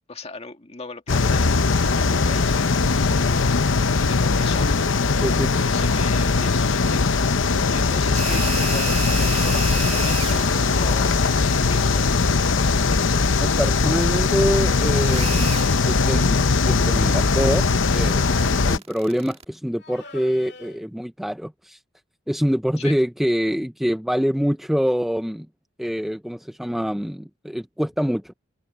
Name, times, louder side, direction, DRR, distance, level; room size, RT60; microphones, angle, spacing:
voice 1, 0.1-1.5 1.8-3.5 4.1-4.8 5.6-7.1 7.7-13.1 22.8-23.0, left 3 dB, 30° left, 2.0 m, -37 dB
sound 1, 1.1-18.8, left 4 dB, 85° left, 0.8 m, -20 dB
voice 2, 5.2-5.5 13.4-17.6 17.9-21.8 22.3-25.5 25.8-28.3, equal, ahead, 0.5 m, -25 dB
sound 2, 8.1-19.4, right 6 dB, 30° right, 1.6 m, -34 dB
sound 3, 12.8-13.8 15.2-16.2 17.6-18.8 19.8-20.8, left 3 dB, 60° left, 2.3 m, -42 dB
head